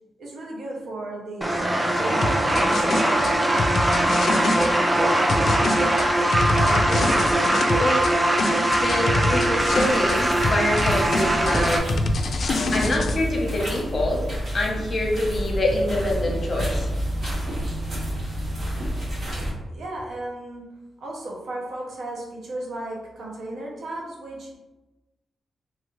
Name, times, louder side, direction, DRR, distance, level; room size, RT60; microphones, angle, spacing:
voice 1, 0.2-1.5 1.9-3.2 19.7-20.6 21.0-24.5, right 2 dB, 80° right, -2 dB, 0.7 m, -34 dB
sound 1, 1.4-11.8, right 1 dB, 15° right, 0.4 m, -21 dB
sound 2, 2.2-4.7 5.3-8.1 8.4-10.2 10.4-13.2, left 2 dB, 60° left, 0.3 m, -25 dB
voice 2, 6.6-7.4 7.8-8.1 8.7-11.8 12.7-14.2 14.5-16.9, left 1 dB, 40° left, -1 dB, 0.8 m, -26 dB
sound 3, 9.6-19.5, equal, 55° right, 1.4 m, -30 dB
3.1 x 2.4 x 3.0 m, 1.1 s
cardioid pair, 95°, 0 cm